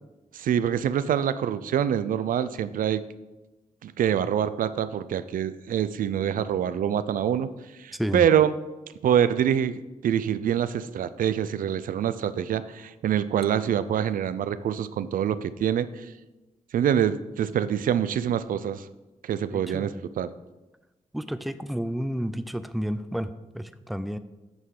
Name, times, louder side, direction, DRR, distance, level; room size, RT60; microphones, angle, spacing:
voice 1, 0.3-3.0 3.8-7.5 7.8-8.5 9.0-15.9 16.7-18.8 19.2-20.3, right 9 dB, 85° right, 14 dB, 0.4 m, -25 dB
voice 2, 7.9-8.3 19.5-20.0 21.1-24.2, equal, ahead, 12 dB, 0.4 m, -31 dB
8.1 x 3.7 x 6.5 m, 1.1 s
cardioid pair, 90°, 14 cm